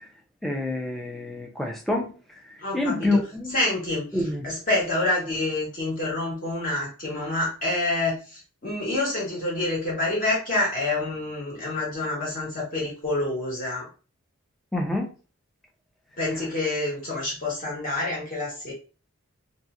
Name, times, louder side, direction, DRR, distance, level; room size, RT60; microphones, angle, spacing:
voice 1, 0.4-2.1 2.7-3.6 4.1-4.5 14.7-15.1, left 2 dB, ahead, 0 dB, 0.5 m, -27 dB
voice 2, 2.6-3.2 3.5-13.9 16.2-18.7, left 2 dB, 40° left, -4 dB, 1.2 m, -27 dB
2.7 x 2.1 x 3.6 m, 0.35 s
head